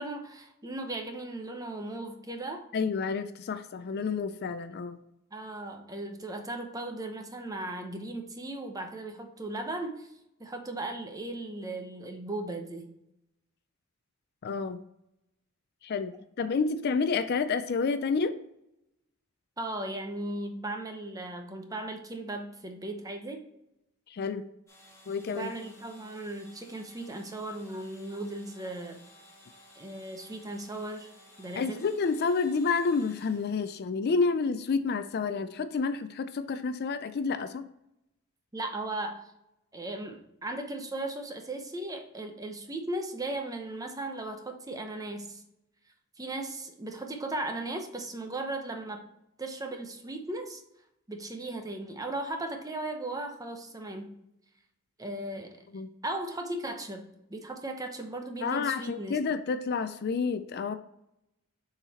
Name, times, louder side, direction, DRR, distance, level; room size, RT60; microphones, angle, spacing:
voice 1, 0.0-2.6 5.3-10.1 10.4-12.8 19.6-23.4 25.3-29.0 29.7-31.1 31.4-31.9 38.5-39.2 39.7-45.4 46.2-49.0 49.4-50.6 51.1-54.1 55.0-55.6 56.0-57.0 57.3-59.2, right 2 dB, 15° right, 4 dB, 0.8 m, -37 dB
voice 2, 2.7-5.0 14.4-14.8 15.8-18.4 24.1-24.5 25.1-25.5 31.5-37.6 55.7-55.9 58.4-60.8, left 4 dB, 50° left, 11 dB, 0.4 m, -29 dB
sound 1, 24.7-33.8, left 1 dB, 15° left, 2.6 m, -56 dB
7.1 x 4.0 x 4.1 m, 0.82 s
head